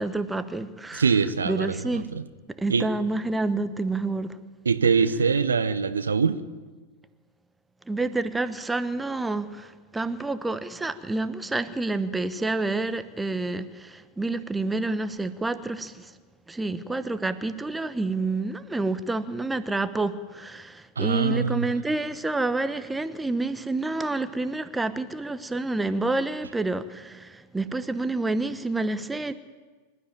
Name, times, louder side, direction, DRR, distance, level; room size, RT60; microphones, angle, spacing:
voice 1, 0.0-1.0 1.4-2.0 2.5-4.4 7.9-16.1 16.5-29.3, right 2 dB, 10° right, 1.0 m, -28 dB
voice 2, 0.9-2.2 2.7-2.9 4.6-6.4 21.0-21.7, right 5 dB, 75° right, 1.0 m, -23 dB
25.0 x 13.0 x 9.1 m
figure-of-eight pair, 90°, 0 cm